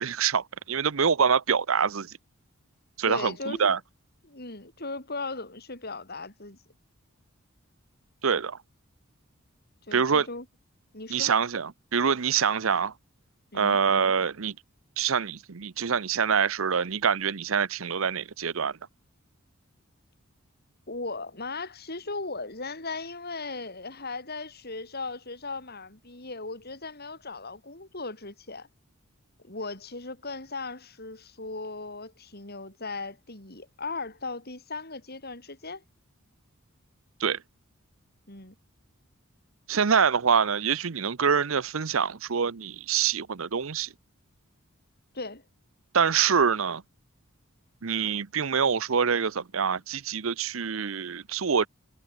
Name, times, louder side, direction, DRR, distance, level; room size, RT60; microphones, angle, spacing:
voice 1, 0.0-2.1 3.0-3.8 8.2-8.6 9.9-10.3 11.1-12.9 13.5-14.5 15.0-18.8 37.2-37.4 39.7-43.9 45.9-46.8 47.8-51.7, right 6 dB, 70° right, 0.8 m, -25 dB
voice 2, 3.0-3.8 4.2-6.6 9.9-10.5 10.9-11.3 13.5-13.8 20.9-28.7 29.4-35.8 38.3-38.6 45.1-45.4, left 3 dB, 50° left, 7.1 m, -37 dB
head